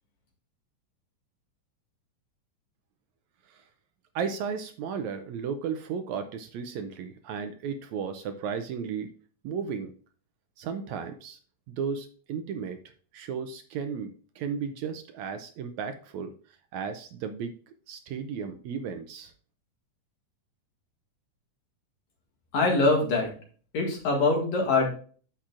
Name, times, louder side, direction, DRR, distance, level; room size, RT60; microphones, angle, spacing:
voice 1, 4.1-9.1 9.4-9.9 10.6-11.4 11.7-12.8 13.1-16.3 16.7-17.5 17.9-19.3, right 6 dB, 75° right, 8 dB, 1.7 m, -34 dB
voice 2, 22.5-23.3 23.7-24.9, left 3 dB, 60° left, 0 dB, 3.1 m, -23 dB
9.9 x 7.4 x 2.5 m, 0.42 s
omnidirectional pair, 3.8 m